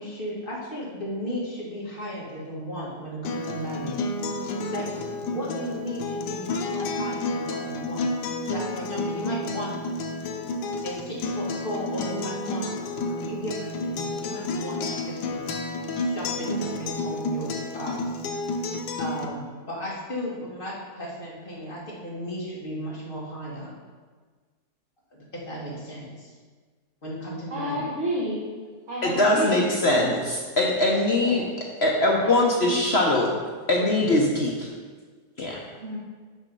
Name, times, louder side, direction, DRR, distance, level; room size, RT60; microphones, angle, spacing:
voice 1, 0.0-4.4 4.7-4.9 5.2-8.1 8.5-9.8 10.8-12.7 13.1-15.4 16.0-18.3 19.0-23.8 25.1-26.3 27.0-27.9, equal, 30° left, -5 dB, 2.1 m, -35 dB
Acoustic guitar, 3.2-19.3, left 2 dB, 85° left, 1.3 m, -30 dB
voice 2, 27.5-28.4 28.9-29.8 30.9-31.5 32.2-32.9 35.8-36.0, right 1 dB, 50° right, -5 dB, 1.4 m, -31 dB
voice 3, 29.0-31.4 31.8-33.3 33.7-34.7 35.4-35.6, left 2 dB, 50° left, -1 dB, 0.9 m, -22 dB
6.3 x 6.1 x 5.4 m, 1.5 s
omnidirectional pair, 1.8 m